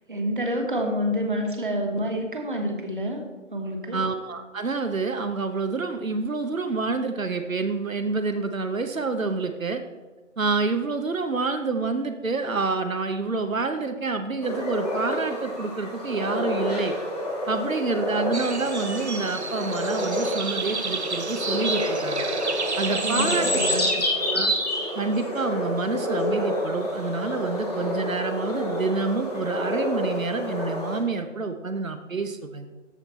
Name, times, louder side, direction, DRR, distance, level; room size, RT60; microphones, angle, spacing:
voice 1, 0.1-3.2 3.5-4.0 23.0-23.9, equal, 40° right, 3 dB, 1.3 m, -28 dB
voice 2, 3.9-9.8 10.4-17.0 17.5-22.2 22.8-24.5 25.0-32.7, right 4 dB, 90° right, 7 dB, 0.8 m, -28 dB
sound 1, 14.4-31.0, equal, 30° left, 1.7 m, -28 dB
sound 2, 18.3-23.9, right 4 dB, 55° right, 0.8 m, -31 dB
13.0 x 4.5 x 4.0 m, 1.3 s
figure-of-eight pair, 160°, 39 cm